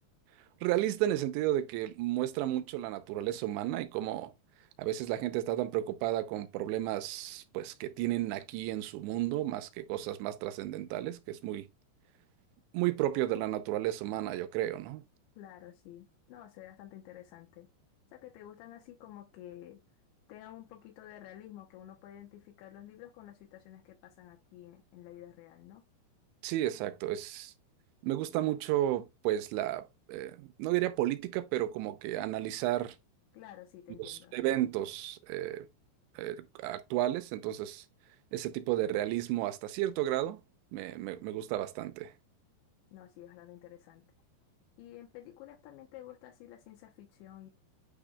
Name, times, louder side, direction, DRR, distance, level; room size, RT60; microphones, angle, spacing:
voice 1, 0.6-4.3 4.8-11.7 12.7-15.0 26.4-27.5 28.0-33.0 34.0-35.7 36.2-37.8 38.3-40.4 40.7-42.1, right 14 dB, 90° right, 3.0 m, -33 dB
voice 2, 15.4-17.7 18.1-19.8 20.3-25.8 33.3-34.4 42.9-44.1 44.8-47.5, left 12 dB, 85° left, 3.2 m, -51 dB
9.2 x 5.1 x 2.3 m
omnidirectional pair, 5.1 m